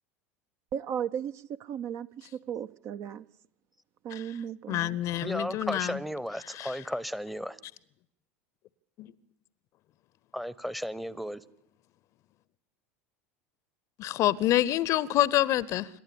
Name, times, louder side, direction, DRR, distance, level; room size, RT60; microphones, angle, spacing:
voice 1, 0.7-3.2 4.0-5.0, right 8 dB, 45° right, 0.7 m, -36 dB
voice 2, 4.7-6.0 6.5-6.7 9.0-9.1 14.0-15.9, left 14 dB, 45° left, 0.7 m, -27 dB
voice 3, 5.2-7.6 10.3-11.4, equal, ahead, 0.9 m, -34 dB
27.0 x 12.0 x 8.6 m
figure-of-eight pair, 75°, 7 cm